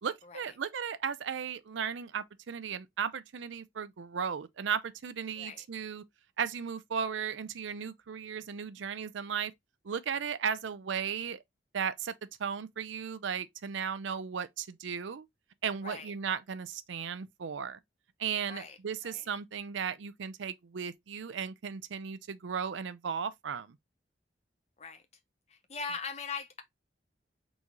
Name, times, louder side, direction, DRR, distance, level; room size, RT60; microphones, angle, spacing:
voice 1, 0.0-6.0 6.4-9.5 9.8-11.4 11.7-12.1 12.4-15.3 15.6-17.8 18.2-23.8, right 7 dB, 80° right, 0.5 m, -36 dB
voice 2, 25.5-26.6, left 5 dB, 35° left, 0.7 m, -40 dB
4.0 x 3.6 x 3.0 m
head